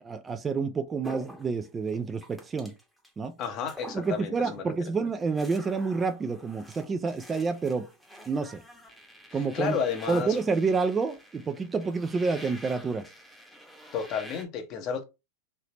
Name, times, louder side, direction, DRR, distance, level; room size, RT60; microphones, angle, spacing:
voice 1, 0.0-2.7 3.2-3.4 3.9-7.9 8.3-8.6 9.3-9.8 10.1-13.1, right 4 dB, 20° right, 0.4 m, -28 dB
sound 1, 1.0-3.1 3.4-4.6 4.9-14.4, equal, ahead, 0.9 m, -48 dB
voice 2, 3.4-4.6 9.3-10.4 13.9-15.0, left 6 dB, 45° left, 0.9 m, -32 dB
3.3 x 2.8 x 2.9 m
hypercardioid pair, 100°, 0 cm